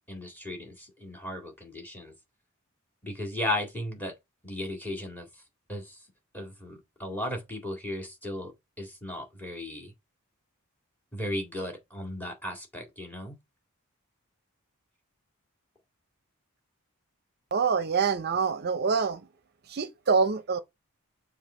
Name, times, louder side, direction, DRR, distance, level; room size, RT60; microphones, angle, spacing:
voice 1, 0.1-2.1 3.0-4.1 4.4-5.3 5.7-6.0 6.3-8.5 8.8-9.9 11.1-13.3, left 1 dB, 10° left, 2.0 m, -35 dB
voice 2, 17.5-19.2 19.7-20.6, right 5 dB, 50° right, 0.6 m, -25 dB
7.1 x 3.3 x 5.6 m
head